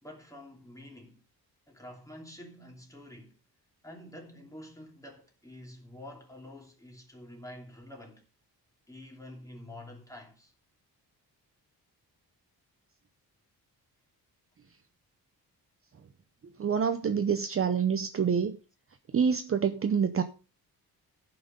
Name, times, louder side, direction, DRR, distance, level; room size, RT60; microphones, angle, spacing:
voice 1, 0.0-1.2 1.7-3.4 3.8-8.2 8.9-10.5, left 1 dB, 10° left, 2.9 m, -48 dB
voice 2, 16.6-18.6 19.1-20.2, right 7 dB, 35° right, 0.7 m, -27 dB
14.5 x 6.0 x 5.2 m
wide cardioid pair, 180°, 38 cm